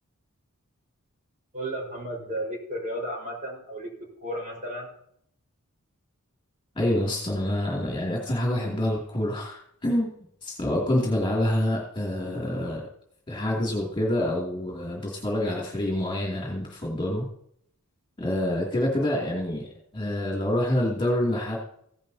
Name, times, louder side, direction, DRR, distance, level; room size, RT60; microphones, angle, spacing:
voice 1, 1.5-4.9, right 1 dB, 35° right, -1 dB, 4.9 m, -34 dB
voice 2, 6.8-12.8 13.3-17.2 18.2-21.6, left 1 dB, 20° left, -3 dB, 2.7 m, -27 dB
16.0 x 10.5 x 2.8 m, 0.69 s
head